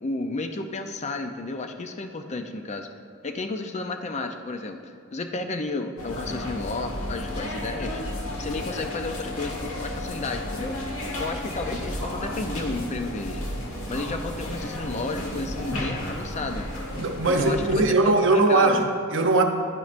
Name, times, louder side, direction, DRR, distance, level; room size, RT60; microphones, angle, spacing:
voice 1, 0.0-2.9 3.2-8.0 8.4-10.8 11.2-13.4 13.9-16.7 17.3-18.9, left 3 dB, 35° left, 6 dB, 0.5 m, -32 dB
sound 1, 6.0-17.8, left 1 dB, 75° left, 1.4 m, -33 dB
voice 2, 17.0-19.4, right 2 dB, 60° right, 5 dB, 0.8 m, -20 dB
11.5 x 9.4 x 2.6 m, 2.2 s
head